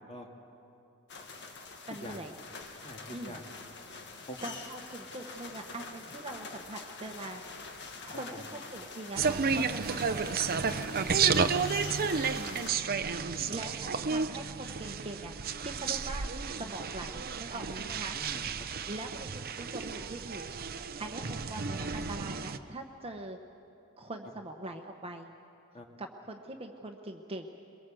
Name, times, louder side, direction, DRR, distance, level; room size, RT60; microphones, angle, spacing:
sound 1, 1.1-12.7, left 4 dB, 55° left, 1.7 m, -45 dB
voice 1, 1.9-2.3 3.1-3.4 4.4-7.4 8.1-10.3 12.3-12.7 13.5-15.4 15.6-18.2 18.9-23.4 24.0-25.3 26.0-27.5, right 2 dB, 25° right, 4 dB, 1.0 m, -42 dB
voice 2, 2.8-3.4 4.3-4.4 8.1-8.4 10.6-11.1 11.6-12.2 12.8-12.9 13.3-13.6 18.1-18.8 25.7-25.9, left 1 dB, 30° left, 2 dB, 2.1 m, -46 dB
sound 2, 9.2-22.6, right 5 dB, 45° right, 0.7 m, -32 dB
22.5 x 22.0 x 7.7 m, 2.8 s
head